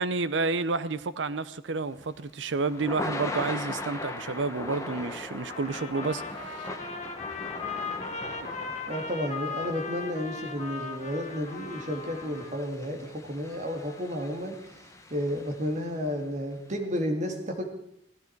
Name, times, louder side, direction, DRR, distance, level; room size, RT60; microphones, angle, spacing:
voice 1, 0.0-6.7 8.4-8.5, right 3 dB, 85° right, 0.7 m, -30 dB
Thunder / Rain, 1.9-16.1, left 2 dB, 15° left, 1.2 m, -40 dB
Trumpet, 5.5-12.6, left 4 dB, 40° left, 1.4 m, -38 dB
voice 2, 8.9-17.7, equal, 40° right, 2.1 m, -32 dB
16.5 x 13.0 x 4.6 m
head